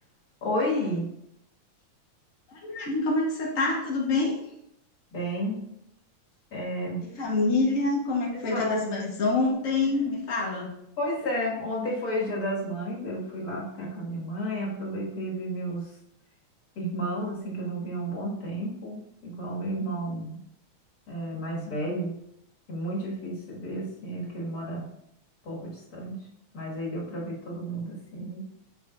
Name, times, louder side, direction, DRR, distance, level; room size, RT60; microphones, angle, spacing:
voice 1, 0.4-1.1 5.1-5.7 6.5-7.1 8.3-8.8 9.8-10.0 11.0-15.9 16.8-20.4 21.1-22.2 22.7-24.9 25.4-26.3 26.5-28.5, equal, 35° left, -5 dB, 2.0 m, -32 dB
voice 2, 2.6-4.3 7.0-10.7, left 3 dB, 75° left, -3 dB, 0.7 m, -26 dB
9.0 x 6.4 x 2.6 m, 0.79 s
omnidirectional pair, 3.6 m